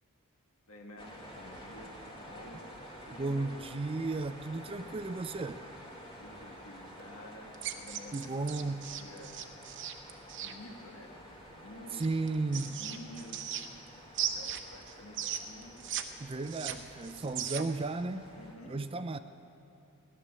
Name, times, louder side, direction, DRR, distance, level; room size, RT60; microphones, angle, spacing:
voice 1, 0.7-3.6 6.2-9.5 10.4-12.2 12.5-13.4 14.1-15.9 18.3-18.8, left 1 dB, 70° left, 2 dB, 1.8 m, -51 dB
sound 1, 1.0-18.6, equal, 25° left, 2.2 m, -50 dB
voice 2, 3.1-5.6 8.1-8.8 11.9-12.8 16.2-18.3 18.7-19.2, right 3 dB, 25° right, 11 dB, 0.4 m, -34 dB
sound 2, 7.5-10.5 12.0-13.9 14.1-16.0 16.3-17.8, right 9 dB, 55° right, 0.8 m, -37 dB
17.0 x 11.0 x 7.5 m, 2.7 s
head